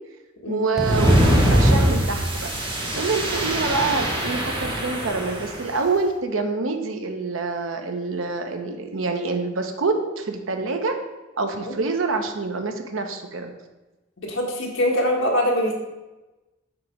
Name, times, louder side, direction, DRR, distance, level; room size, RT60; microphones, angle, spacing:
voice 1, 0.5-2.5 2.9-11.0 11.4-13.5, right 3 dB, 85° right, 5 dB, 0.8 m, -26 dB
sound 1, 0.8-3.1, equal, 5° right, 0.4 m, -25 dB
sound 2, 0.8-5.7, right 1 dB, 25° right, 1.1 m, -23 dB
voice 2, 14.2-15.7, equal, 70° left, -1 dB, 1.4 m, -23 dB
7.6 x 3.0 x 5.0 m, 1.1 s
head